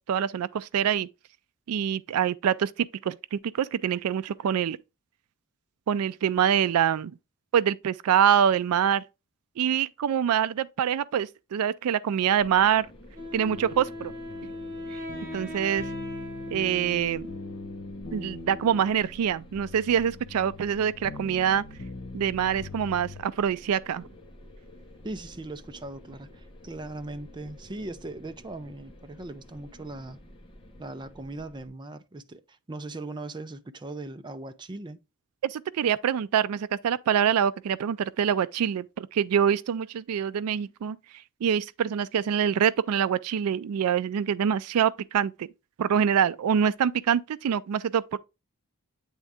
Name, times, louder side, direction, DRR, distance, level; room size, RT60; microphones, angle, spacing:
voice 1, 0.1-1.1 1.7-4.8 5.9-7.1 7.5-9.0 9.6-12.9 13.3-14.1 14.9-15.0 15.3-15.9 16.5-17.3 18.1-21.6 22.1-24.1 35.4-41.0 41.4-45.5 45.8-48.2, right 8 dB, 75° right, 0.3 m, -25 dB
sound 1, 12.4-31.7, left 1 dB, 25° left, 1.1 m, -50 dB
Wind instrument woodwind instrument, 13.1-17.9, left 1 dB, 45° right, 4.0 m, -39 dB
sound 2, 13.4-23.2, left 3 dB, 80° left, 1.1 m, -42 dB
voice 2, 25.0-30.3 30.8-35.0, right 2 dB, 20° right, 0.5 m, -39 dB
8.8 x 3.6 x 3.4 m
head